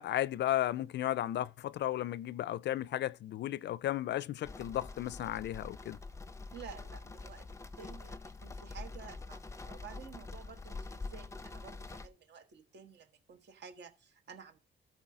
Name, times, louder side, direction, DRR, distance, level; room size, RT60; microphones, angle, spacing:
voice 1, 0.0-6.0, left 13 dB, 60° left, 0.4 m, -34 dB
sound 1, 4.4-12.1, left 3 dB, 15° left, 0.6 m, -45 dB
voice 2, 6.5-14.6, right 7 dB, 60° right, 1.4 m, -52 dB
13.0 x 4.7 x 4.8 m
cardioid pair, 90°, 20 cm